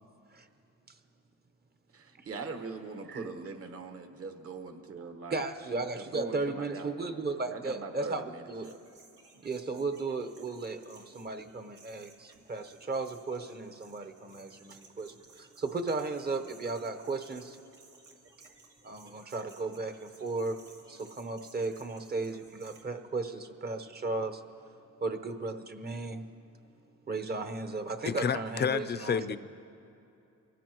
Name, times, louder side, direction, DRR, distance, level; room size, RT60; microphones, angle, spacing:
voice 1, 1.9-5.4 5.9-7.2 7.5-8.7, right 4 dB, 50° right, 6 dB, 1.4 m, -41 dB
voice 2, 5.3-8.7 9.4-17.6 18.8-24.4 25.0-26.2 27.1-29.2, right 3 dB, 30° right, 9 dB, 1.0 m, -35 dB
sound 1, 8.6-22.8, right 3 dB, 80° right, 2.4 m, -58 dB
voice 3, 28.1-29.4, left 7 dB, 35° left, 13 dB, 0.6 m, -30 dB
23.5 x 15.5 x 3.1 m, 2.7 s
cardioid pair, 90°, 30 cm